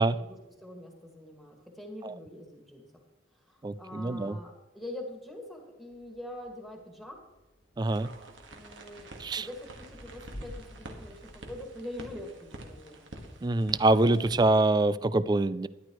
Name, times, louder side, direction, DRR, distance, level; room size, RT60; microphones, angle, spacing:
voice 1, 0.0-2.9 3.3-7.2 8.5-9.1 9.4-13.1, left 1 dB, ahead, 1 dB, 2.0 m, -44 dB
voice 2, 3.6-4.4 7.8-8.1 9.2-9.5 13.4-15.7, right 2 dB, 20° right, 16 dB, 0.3 m, -25 dB
Thunder / Rain, 5.9-14.2, equal, 75° left, 1.7 m, -52 dB
sound 1, 7.9-14.4, right 1 dB, 80° right, 1.7 m, -48 dB
13.5 x 11.5 x 3.1 m, 1.1 s
head